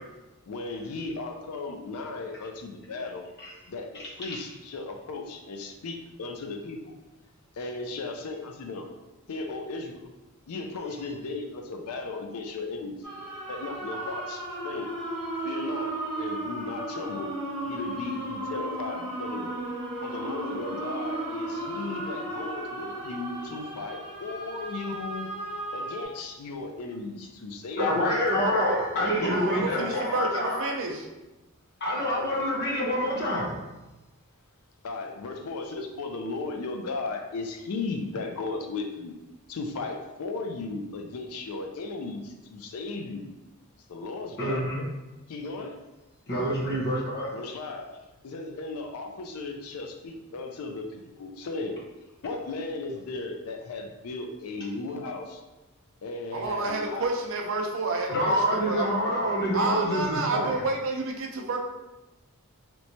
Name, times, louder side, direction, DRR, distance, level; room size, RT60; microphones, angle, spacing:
voice 1, 0.5-3.2 3.7-6.9 7.6-8.9 9.3-10.1 10.5-13.0 13.5-14.9 15.4-17.3 17.6-19.6 20.0-25.3 25.7-28.0 28.4-28.6 28.9-30.2 34.8-39.1 39.5-43.2 43.9-44.9 45.3-45.8 47.3-47.9 48.2-51.8 52.2-55.4 56.0-57.1, left 3 dB, 70° left, 3 dB, 0.4 m, -36 dB
sound 1, 13.0-26.0, right 1 dB, 5° left, 1.2 m, -35 dB
voice 2, 27.7-30.7 31.8-33.6 44.4-44.8 46.3-47.3 58.1-60.7, equal, 50° left, -4 dB, 0.9 m, -27 dB
voice 3, 29.2-31.1 56.3-58.9 59.5-61.6, right 3 dB, 60° right, 2 dB, 0.5 m, -29 dB
3.2 x 3.0 x 2.7 m, 1.1 s
head